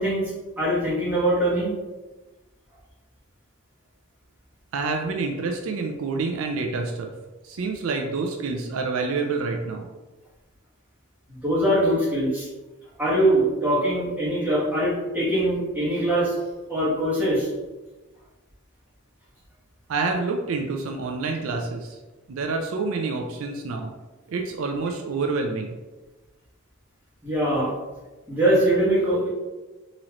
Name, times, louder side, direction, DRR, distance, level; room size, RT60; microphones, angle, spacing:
voice 1, 0.0-1.7 11.3-12.5 13.0-16.3 16.7-17.5 27.2-27.7 28.3-29.3, right 1 dB, 10° right, -9 dB, 1.4 m, -22 dB
voice 2, 4.7-7.1 7.4-9.9 19.9-22.0 22.3-23.9 24.3-25.8, right 4 dB, 70° right, 3 dB, 0.4 m, -27 dB
3.8 x 3.0 x 3.0 m, 1.2 s
head